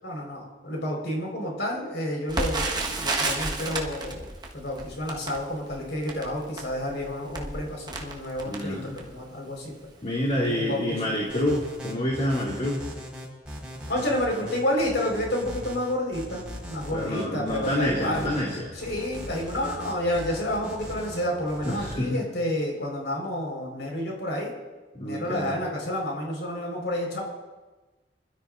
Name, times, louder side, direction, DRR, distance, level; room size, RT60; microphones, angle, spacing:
voice 1, 0.0-4.3 4.5-9.7 10.3-11.1 13.9-18.3 18.7-24.5 25.0-27.2, left 1 dB, 85° left, -1 dB, 4.7 m, -30 dB
Crackle, 2.3-9.3 9.9-10.0 10.3-10.5 11.1-11.4 11.6-11.7, right 2 dB, 25° right, 1.5 m, -32 dB
voice 2, 8.4-9.0 10.0-12.8 16.9-18.7 21.7-22.2 24.9-25.6, left 1 dB, 40° left, -4 dB, 2.3 m, -28 dB
sound 1, 11.3-21.9, equal, 5° right, 4.8 m, -39 dB
25.5 x 13.0 x 2.6 m, 1.2 s
head